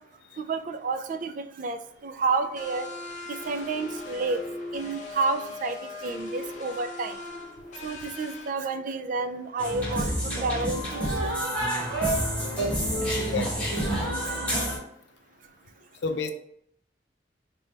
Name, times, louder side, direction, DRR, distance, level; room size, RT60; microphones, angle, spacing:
voice 1, 0.5-1.8 2.0-2.9 3.5-4.4 4.7-5.8 6.0-7.2 7.8-10.1 10.4-11.3, right 3 dB, 50° right, 9 dB, 0.3 m, -30 dB
sound 1, 2.6-8.5, left 2 dB, 45° left, 0.8 m, -39 dB
sound 2, 9.6-14.8, right 1 dB, 10° left, 1.4 m, -28 dB
voice 2, 13.3-13.7 16.0-16.3, left 4 dB, 80° left, 7 dB, 0.4 m, -30 dB
5.0 x 2.2 x 3.2 m, 0.71 s
head